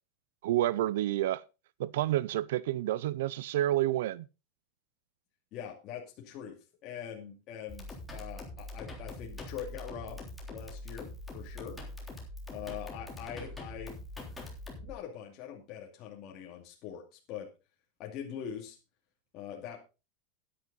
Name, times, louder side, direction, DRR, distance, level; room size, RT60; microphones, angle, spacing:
voice 1, 0.4-1.4 1.8-4.3, right 14 dB, 80° right, 0.5 m, -29 dB
voice 2, 5.5-6.6 6.8-7.9 8.1-10.2 10.5-11.8 12.5-14.0 14.8-17.5 18.0-18.8 19.3-19.8, left 9 dB, 40° left, 2.3 m, -43 dB
sound 1, 7.7-14.9, left 1 dB, 5° left, 3.5 m, -43 dB
12.0 x 10.0 x 4.0 m
supercardioid pair, 150°, 0 cm